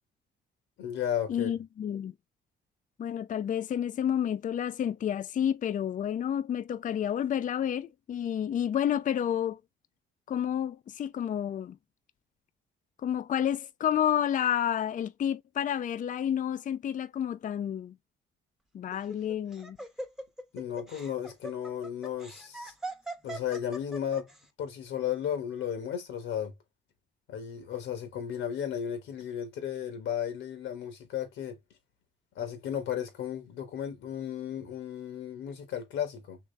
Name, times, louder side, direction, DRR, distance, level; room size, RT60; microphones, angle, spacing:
voice 1, 0.8-1.5 20.5-22.7 23.2-24.3 24.6-26.5 27.3-31.6 32.3-36.4, left 9 dB, 85° left, 1.7 m, -34 dB
voice 2, 1.3-2.1 3.0-9.6 10.3-11.8 13.0-17.9 18.7-19.8, left 9 dB, 40° left, 0.4 m, -30 dB
Laughter, 18.9-24.4, right 2 dB, ahead, 0.8 m, -41 dB
3.6 x 3.1 x 3.4 m
cardioid pair, 90°, 20 cm